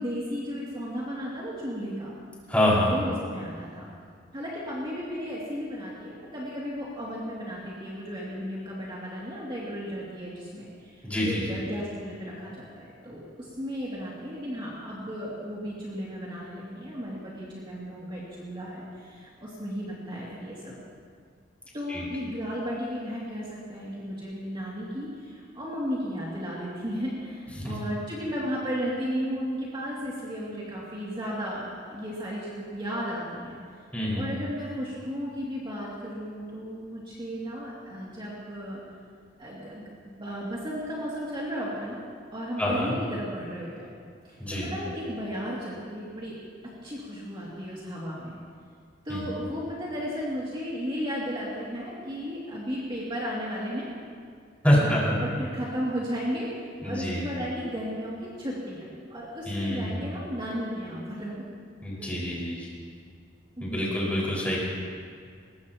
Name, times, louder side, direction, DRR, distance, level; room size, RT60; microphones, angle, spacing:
voice 1, 0.0-2.1 2.9-3.9 4.3-20.7 21.7-33.6 34.2-38.8 39.4-39.8 40.2-42.0 42.3-43.9 44.2-46.4 46.8-48.4 49.0-53.9 54.7-61.3 62.0-62.3 63.6-64.0, equal, 25° right, -7 dB, 2.7 m, -34 dB
voice 2, 2.5-3.0 11.0-11.6 21.9-22.0 27.6-27.7 33.9-34.2 42.6-42.9 44.4-44.7 49.1-49.2 54.6-55.1 56.8-57.2 59.5-60.0 61.8-62.7 63.6-64.6, equal, 10° left, -6 dB, 5.4 m, -26 dB
23.0 x 20.0 x 3.0 m, 2.1 s
head